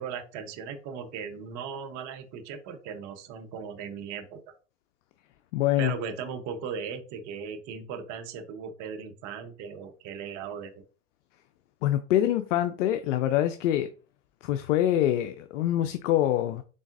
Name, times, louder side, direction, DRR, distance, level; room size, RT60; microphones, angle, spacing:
voice 1, 0.0-4.4 5.8-10.8, right 6 dB, 50° right, 0.9 m, -37 dB
voice 2, 5.5-5.9 11.8-13.9 14.4-16.6, left 12 dB, 75° left, 0.5 m, -25 dB
4.0 x 3.8 x 2.5 m
hypercardioid pair, 100°, 38 cm